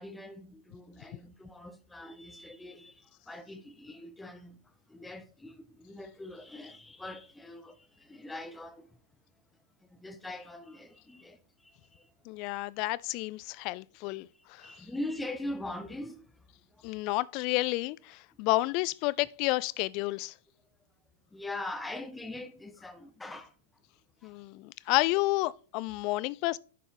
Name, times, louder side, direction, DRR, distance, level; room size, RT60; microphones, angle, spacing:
voice 1, 0.0-9.0 9.9-12.1 14.6-16.3 16.7-16.9 21.3-23.5 24.2-24.3, left 1 dB, 5° left, 0.7 m, -42 dB
voice 2, 12.3-14.7 16.8-20.3 24.2-26.6, left 20 dB, 40° left, 0.3 m, -30 dB
10.5 x 4.2 x 3.4 m
figure-of-eight pair, 100°, 0 cm